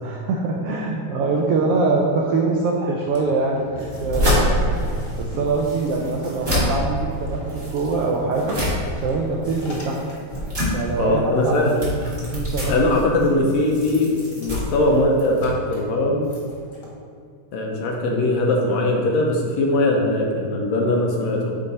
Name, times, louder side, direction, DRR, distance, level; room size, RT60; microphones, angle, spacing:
voice 1, 0.0-3.7 4.0-4.8 5.2-8.6 9.0-10.0 10.7-11.8 12.3-13.1 13.4-13.6, right 3 dB, 85° right, -2 dB, 1.3 m, -23 dB
sound 1, 3.1-10.6 11.2-11.3 11.5-16.9, left 1 dB, 45° left, 1.7 m, -40 dB
sound 2, 3.8-15.5, equal, 25° right, 1.3 m, -26 dB
voice 2, 11.0-11.8 12.7-16.3 17.5-21.6, left 2 dB, 75° left, 0 dB, 1.8 m, -20 dB
9.3 x 3.7 x 4.1 m, 2.3 s
omnidirectional pair, 3.4 m